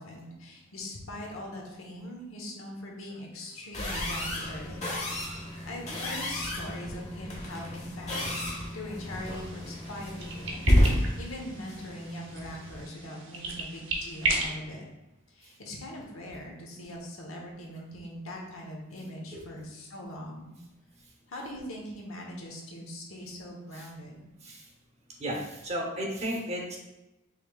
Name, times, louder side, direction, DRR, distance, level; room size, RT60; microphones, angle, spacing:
voice 1, 0.0-4.8 5.1-14.8 15.3-20.5 21.3-24.2, left 1 dB, 85° left, -1 dB, 1.0 m, -42 dB
sound 1, 3.7-12.9, equal, 35° left, 0.9 m, -31 dB
sound 2, 9.1-14.5, right 2 dB, 60° right, 0.7 m, -35 dB
voice 2, 25.2-26.8, equal, 30° right, -1 dB, 0.8 m, -34 dB
5.5 x 3.2 x 2.3 m, 0.99 s
head